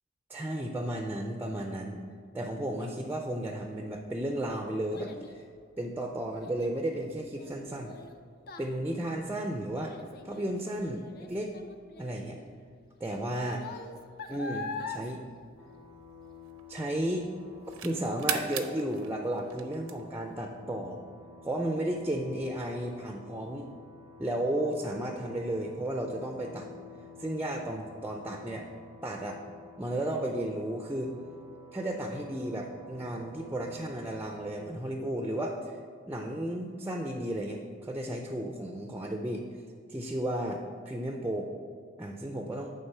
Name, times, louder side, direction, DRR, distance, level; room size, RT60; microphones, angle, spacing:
voice 1, 0.3-2.0 2.3-5.4 5.8-8.0 8.6-10.0 10.2-11.6 12.0-12.4 13.0-13.6 14.3-15.2 16.7-17.3 17.8-21.0 21.4-23.7 24.2-26.7 27.2-28.7 29.0-29.4 29.8-31.1 31.7-35.8 36.0-39.5 39.9-41.5 42.0-42.7, right 1 dB, 10° right, 3 dB, 0.4 m, -33 dB
Child speech kid speaking, 3.8-16.4 16.7-17.2 17.7-17.8, left 3 dB, 50° left, 0.5 m, -44 dB
sound 1, 15.2-16.9 17.4-20.4, right 9 dB, 80° right, 0.6 m, -38 dB
sound 2, 15.6-34.6, left 3 dB, 75° left, 2.0 m, -51 dB
8.9 x 3.7 x 5.4 m, 2.2 s
head